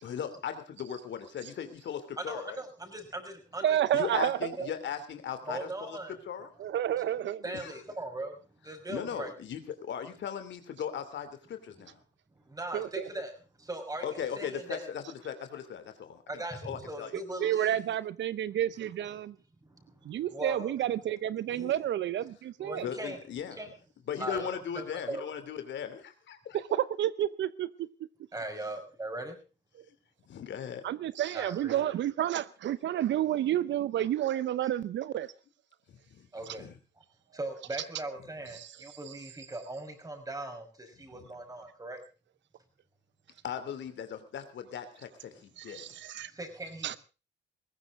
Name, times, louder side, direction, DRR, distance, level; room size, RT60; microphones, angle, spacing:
voice 1, 0.0-2.6 3.9-6.0 6.3-6.5 7.5-7.8 8.9-12.0 14.0-17.1 22.8-23.6 24.1-26.6 30.3-30.9 35.9-36.7 41.2-41.3 43.4-46.0, left 8 dB, 65° left, 10 dB, 2.8 m, -38 dB
voice 2, 2.2-4.0 5.5-6.2 7.0-7.1 7.4-8.3 8.6-9.3 12.5-14.9 16.3-17.8 20.3-20.8 21.5-21.7 22.6-23.2 23.6-23.7 24.2-24.5 24.8-25.2 28.3-29.3 31.3-31.9 34.6-34.7 36.3-36.7 37.3-42.0 46.3-47.0, right 2 dB, 20° right, 6 dB, 5.9 m, -39 dB
voice 3, 3.6-4.4 6.6-7.4 12.7-13.0 17.4-19.3 20.1-22.9 26.5-27.9 30.8-35.3 38.5-38.7 39.1-39.2 45.6-46.3 46.8-47.0, right 11 dB, 65° right, 17 dB, 0.7 m, -30 dB
20.0 x 16.5 x 3.7 m, 0.33 s
cardioid pair, 90°, 20 cm